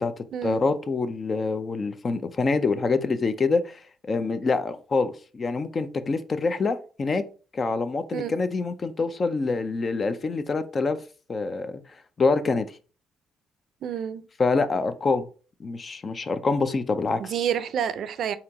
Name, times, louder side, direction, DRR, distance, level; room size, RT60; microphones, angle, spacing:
voice 1, 0.0-7.2 7.5-11.0 11.3-11.8 12.2-12.7 14.4-15.3 15.6-17.3, left 4 dB, 40° left, 0.6 m, -26 dB
voice 2, 13.8-14.2 17.2-18.4, right 9 dB, 65° right, 0.5 m, -28 dB
4.3 x 2.9 x 3.6 m
supercardioid pair, 70°, 0 cm